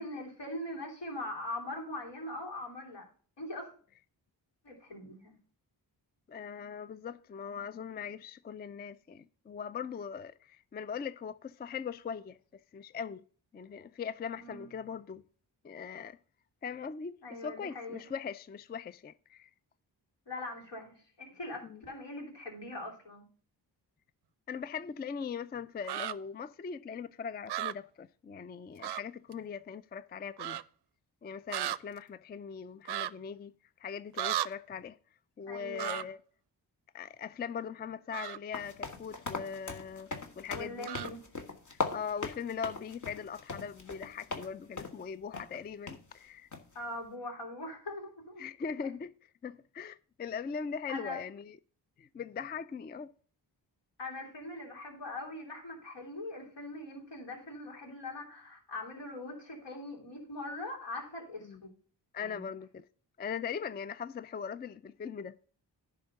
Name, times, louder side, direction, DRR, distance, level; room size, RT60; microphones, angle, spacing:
voice 1, 0.0-3.0 3.4-3.7 4.6-5.3 14.4-14.7 17.2-18.0 20.3-23.3 35.5-36.0 40.5-41.2 46.7-48.4 50.9-51.2 54.0-61.7 62.3-62.5, left 2 dB, 75° left, 3.1 m, -41 dB
voice 2, 6.3-12.4 12.7-13.2 13.5-15.2 15.6-16.2 16.6-19.5 21.6-21.8 24.5-30.6 31.2-33.5 33.8-35.0 35.4-36.2 36.9-40.1 40.4-40.9 41.7-46.5 48.4-51.6 52.0-53.1 61.4-61.6 62.1-62.9 63.2-65.3, left 6 dB, 25° left, 0.3 m, -40 dB
sound 1, 25.8-26.1 27.5-27.7 28.8-29.0 29.3-29.4 30.4-30.6 31.5-31.8 32.8-33.1 34.2-34.5 35.8-36.0 38.1-38.4 40.9-41.1, right 13 dB, 65° right, 0.5 m, -34 dB
sound 2, 38.5-44.5 44.8-45.0 45.3-45.5 45.9-46.0 46.5-46.8, left 3 dB, 45° left, 1.5 m, -39 dB
10.5 x 3.7 x 6.4 m
cardioid pair, 50°, 43 cm